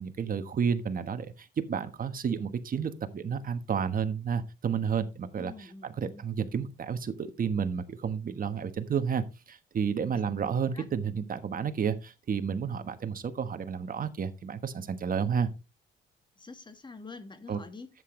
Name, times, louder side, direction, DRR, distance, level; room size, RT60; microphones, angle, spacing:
voice 1, 0.0-15.5 17.5-17.6, right 7 dB, 45° right, 1.3 m, -31 dB
voice 2, 5.3-6.2 10.1-10.3 10.7-10.8 16.4-17.9, left 3 dB, 25° left, 1.7 m, -46 dB
11.0 x 8.0 x 3.2 m
cardioid pair, 90°, 20 cm